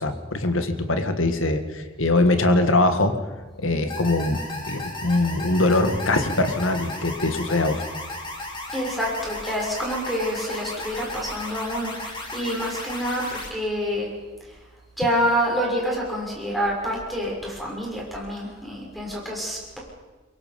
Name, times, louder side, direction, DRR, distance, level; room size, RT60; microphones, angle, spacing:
voice 1, 0.0-3.2 3.6-4.4 4.7-7.8, left 2 dB, 80° left, 8 dB, 1.8 m, -22 dB
sound 1, 3.9-13.5, left 2 dB, 25° left, 3.3 m, -35 dB
voice 2, 8.7-14.1 14.4-14.6 15.0-19.8, equal, ahead, -3 dB, 6.6 m, -27 dB
23.5 x 23.5 x 5.4 m, 1.3 s
head